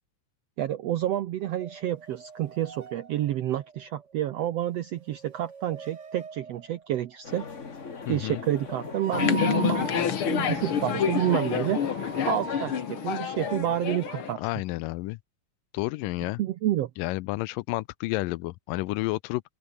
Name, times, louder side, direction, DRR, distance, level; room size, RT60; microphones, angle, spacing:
voice 1, 0.6-7.4 8.1-11.8 12.3-14.5 16.4-16.9, right 12 dB, 75° right, 1.5 m, -29 dB
sound 1, 1.6-4.5 4.8-7.3 8.8-13.6, right 5 dB, 55° right, 0.8 m, -41 dB
sound 2, 7.2-12.8, left 5 dB, 30° left, 1.5 m, -40 dB
voice 2, 8.1-8.4 14.4-15.2 15.7-16.4 17.0-19.4, left 20 dB, 85° left, 2.2 m, -30 dB
sound 3, 9.1-14.3, left 9 dB, 50° left, 1.9 m, -28 dB
open air
omnidirectional pair, 3.9 m